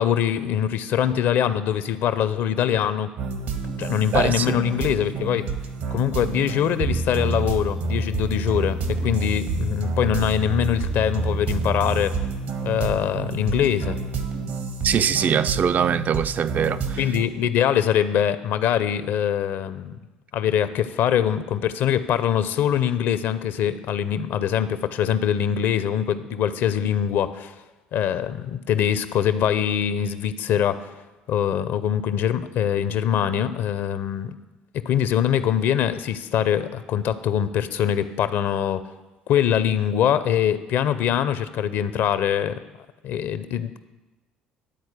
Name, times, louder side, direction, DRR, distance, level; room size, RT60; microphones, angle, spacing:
voice 1, 0.0-3.1 3.8-5.4 5.9-12.2 12.6-14.0 17.0-20.0 20.3-27.5 27.9-30.9 31.3-34.3 34.7-38.8 39.3-42.6 43.0-43.8, left 9 dB, 65° left, 0.6 m, -23 dB
sound 1, 3.2-17.2, right 3 dB, 70° right, 1.3 m, -28 dB
voice 2, 4.1-4.6 14.8-17.0, right 7 dB, 45° right, 0.4 m, -22 dB
12.0 x 4.3 x 8.2 m
hypercardioid pair, 60°, 4 cm